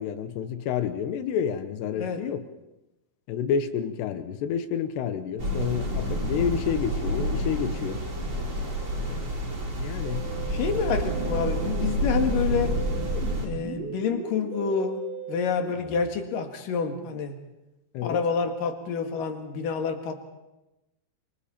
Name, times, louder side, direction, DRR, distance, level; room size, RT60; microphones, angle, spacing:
voice 1, 0.0-2.4 3.3-8.0 9.0-9.3 9.8-10.3 17.9-18.2, left 8 dB, 75° left, 10 dB, 3.1 m, -29 dB
sound 1, 5.4-13.5, equal, 30° right, 5.3 m, -29 dB
Musical instrument, 10.0-16.1, right 6 dB, 85° right, 5.8 m, -39 dB
voice 2, 10.5-12.8 13.4-15.0 15.3-17.4 18.0-20.1, left 6 dB, 60° left, 5 dB, 3.1 m, -28 dB
28.5 x 24.5 x 4.4 m, 0.98 s
omnidirectional pair, 5.1 m